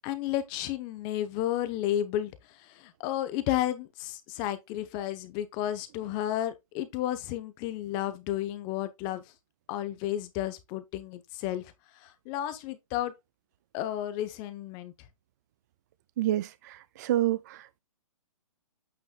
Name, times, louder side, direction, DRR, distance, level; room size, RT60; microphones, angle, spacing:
voice 1, 0.0-9.2 9.7-13.1 13.7-14.9, left 12 dB, 25° left, 0.9 m, -32 dB
voice 2, 16.2-17.8, right 13 dB, 30° right, 0.3 m, -29 dB
8.8 x 5.5 x 2.4 m
hypercardioid pair, 155°, 18 cm